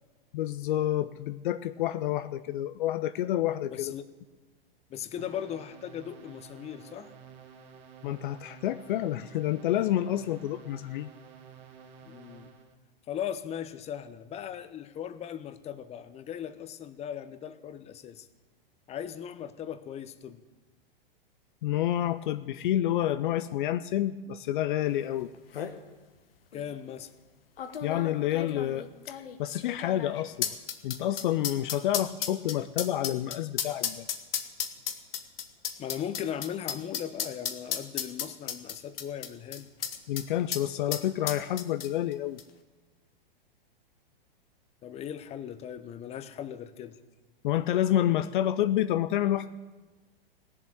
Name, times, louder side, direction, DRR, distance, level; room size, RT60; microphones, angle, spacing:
voice 1, 0.3-3.9 8.0-11.1 21.6-25.3 27.8-30.5 30.8-34.1 40.1-42.4 47.4-49.5, left 12 dB, 55° left, 13 dB, 0.6 m, -29 dB
voice 2, 3.7-4.1 4.9-7.1 12.0-12.5 13.1-18.3 18.9-20.4 26.5-27.1 35.8-39.7 44.8-47.0, left 9 dB, 20° left, 12 dB, 0.8 m, -38 dB
sound 1, 5.2-12.7, right 7 dB, 50° right, 2.0 m, -51 dB
sound 2, 25.0-25.1 25.3-25.8 26.5-26.6 27.6-40.3 40.5-40.6 40.9-42.1 42.4-42.5, left 8 dB, 75° left, 1.4 m, -34 dB
16.5 x 7.5 x 9.1 m, 1.3 s
hypercardioid pair, 115°, 29 cm